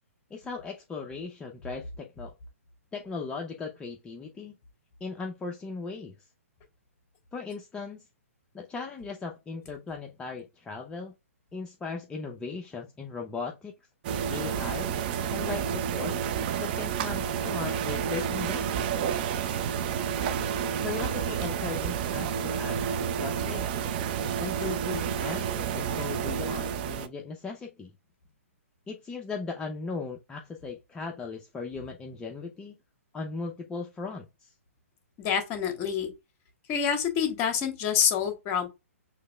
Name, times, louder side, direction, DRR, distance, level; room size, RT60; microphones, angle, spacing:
voice 1, 0.3-2.3 2.9-4.6 5.0-6.3 7.3-8.0 8.5-11.1 11.5-13.7 14.3-14.9 15.3-16.2 16.6-19.0 20.8-22.9 23.2-23.7 24.4-27.9 28.9-32.8 33.1-34.5, left 4 dB, 10° left, 0.6 m, -38 dB
sound 1, 14.0-27.1, right 8 dB, 40° right, 0.6 m, -30 dB
voice 2, 35.2-36.1 36.7-38.7, left 8 dB, 30° left, 1.4 m, -27 dB
6.5 x 3.1 x 2.3 m
figure-of-eight pair, 125°, 8 cm